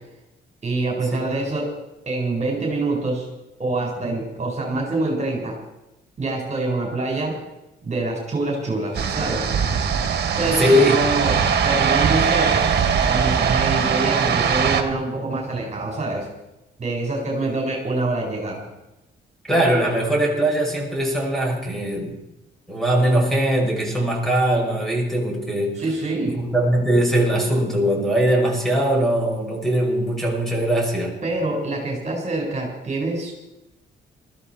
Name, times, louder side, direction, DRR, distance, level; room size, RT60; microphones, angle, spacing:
voice 1, 0.6-1.7 2.1-3.3 3.6-5.6 6.2-7.4 7.8-9.5 10.4-12.7 13.0-16.3 16.8-18.6 25.8-26.4 31.2-33.3, right 2 dB, 35° right, 0 dB, 4.7 m, -25 dB
sound 1, 8.9-14.8, right 7 dB, 55° right, 2.1 m, -21 dB
voice 2, 10.6-11.0 19.5-22.1 22.7-25.8 26.3-31.1, right 1 dB, ahead, -1 dB, 6.0 m, -20 dB
20.0 x 14.0 x 4.5 m, 0.94 s
cardioid pair, 90°, 20 cm